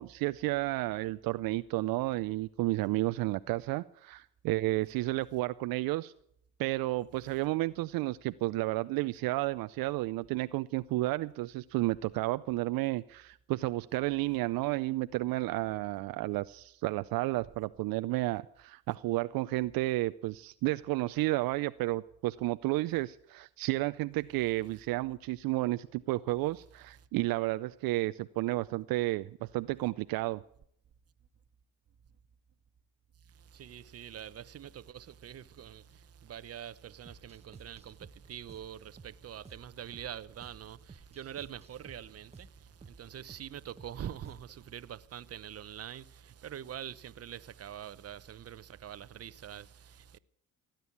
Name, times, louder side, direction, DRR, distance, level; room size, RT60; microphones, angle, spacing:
voice 1, 0.0-6.1 6.6-30.4, right 19 dB, 70° right, 0.6 m, -32 dB
voice 2, 33.2-50.2, right 10 dB, 40° right, 0.9 m, -45 dB
sound 1, 37.1-44.7, right 3 dB, 15° right, 1.0 m, -56 dB
17.5 x 9.1 x 8.3 m
supercardioid pair, 75°, 37 cm